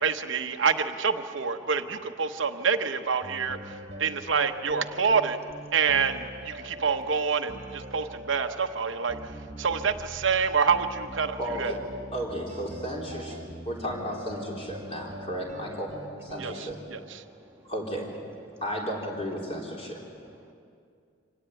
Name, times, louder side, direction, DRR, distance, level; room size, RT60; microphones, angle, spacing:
voice 1, 0.0-5.4 5.7-11.7 16.4-17.2, right 5 dB, 70° right, 6 dB, 0.9 m, -27 dB
sound 1, 3.2-16.8, right 1 dB, 35° right, 1.6 m, -43 dB
voice 2, 9.2-9.7 13.5-13.7 15.2-15.3 16.4-16.5 17.2-17.7 18.4-18.6 19.4-19.5 20.0-20.5, equal, 15° right, 2 dB, 2.0 m, -58 dB
voice 3, 11.4-11.8 12.1-15.9 16.2-16.8 17.7-18.1 18.6-20.0, equal, 30° left, -2 dB, 4.0 m, -34 dB
25.5 x 18.5 x 9.0 m, 2.4 s
head